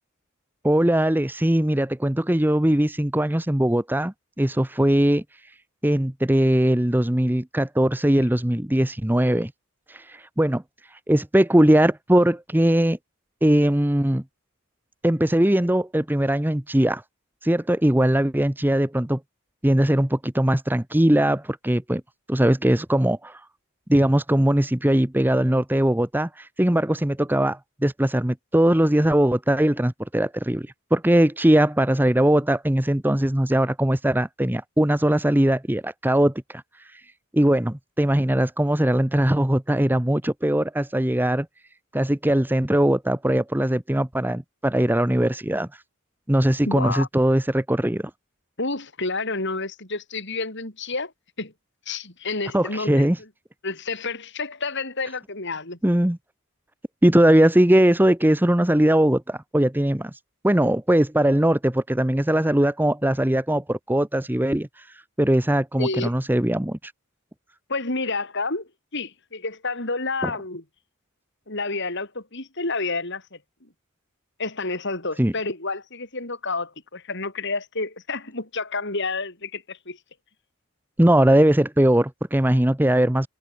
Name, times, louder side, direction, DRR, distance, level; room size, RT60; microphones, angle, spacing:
voice 1, 0.6-5.2 5.8-9.5 9.9-10.6 11.1-13.0 13.4-14.2 15.0-17.0 17.4-19.2 19.6-22.0 22.3-23.4 23.9-36.6 36.9-37.0 37.3-41.5 41.9-45.7 46.3-48.1 52.5-53.2 55.8-56.2 57.0-60.1 60.4-64.8 65.2-66.9 70.2-70.3 75.2-75.3 81.0-83.3, right 1 dB, 10° right, 0.8 m, -20 dB
voice 2, 46.7-47.1 48.6-51.1 51.4-51.5 51.9-53.1 53.6-55.8 65.8-66.1 67.7-70.6 71.5-73.4 74.4-80.0, left 3 dB, 55° left, 4.9 m, -29 dB
head